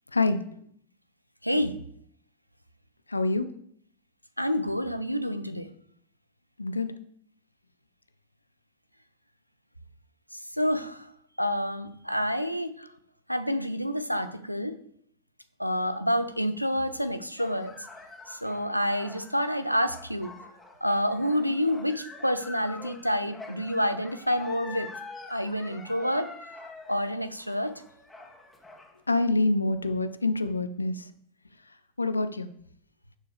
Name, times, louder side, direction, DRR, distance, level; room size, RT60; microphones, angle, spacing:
voice 1, 1.4-1.8 4.4-5.7 10.6-11.0 11.4-12.9 13.3-14.7 15.6-17.7 18.3-20.3 20.8-24.9 25.3-26.3 26.9-27.7, equal, 90° right, 11 dB, 0.7 m, -28 dB
voice 2, 3.1-3.5 6.6-6.9 29.1-31.0 32.0-32.5, left 2 dB, 80° left, 12 dB, 0.6 m, -26 dB
sound 1, 17.4-29.0, left 3 dB, 10° left, 1.9 m, -46 dB
11.0 x 6.8 x 3.5 m, 0.66 s
figure-of-eight pair, 90°, 0 cm